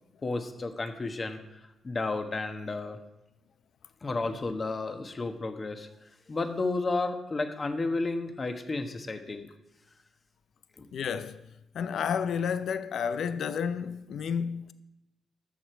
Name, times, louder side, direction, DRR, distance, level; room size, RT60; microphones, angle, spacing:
voice 1, 0.2-3.0 4.0-5.9 6.3-9.5 10.8-10.9, left 3 dB, 40° left, 1.3 m, -32 dB
voice 2, 10.9-11.5 11.7-14.7, left 7 dB, 70° left, 0.5 m, -31 dB
12.5 x 6.7 x 4.5 m
supercardioid pair, 55°, 0 cm